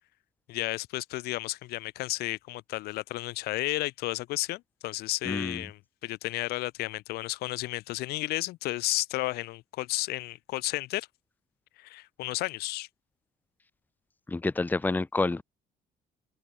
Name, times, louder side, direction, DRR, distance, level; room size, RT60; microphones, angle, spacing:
voice 1, 0.5-11.1 11.8-12.9, left 19 dB, 80° left, 3.9 m, -32 dB
voice 2, 5.2-5.6 14.3-15.4, left 3 dB, 10° left, 1.5 m, -28 dB
open air
cardioid pair, 150°, 16 cm